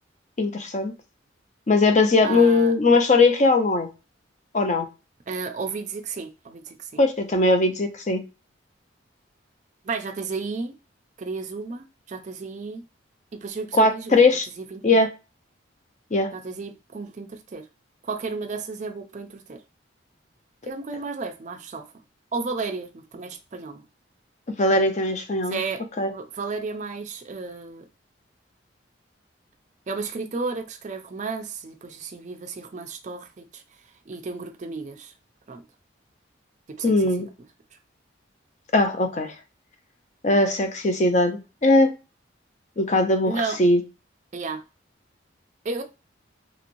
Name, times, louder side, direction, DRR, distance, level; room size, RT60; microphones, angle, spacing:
voice 1, 0.4-0.9 1.7-3.9 4.5-4.9 7.0-8.2 13.7-14.5 14.8-15.1 16.1-16.3 24.6-25.6 26.0-26.1 36.8-37.3 38.7-39.3 40.2-41.9 42.8-43.8, left 2 dB, 35° left, 0.5 m, -20 dB
voice 2, 2.2-2.7 5.3-7.0 9.8-10.7 11.2-12.8 13.3-14.3 14.6-15.0 16.3-17.7 18.0-19.6 20.6-21.9 22.3-23.8 25.3-25.8 26.1-27.9 29.9-33.6 34.1-35.1 35.5-35.6 36.8-36.9 43.3-43.6 44.3-44.6 45.6-45.8, right 4 dB, 40° right, 0.4 m, -33 dB
3.0 x 2.9 x 2.5 m
head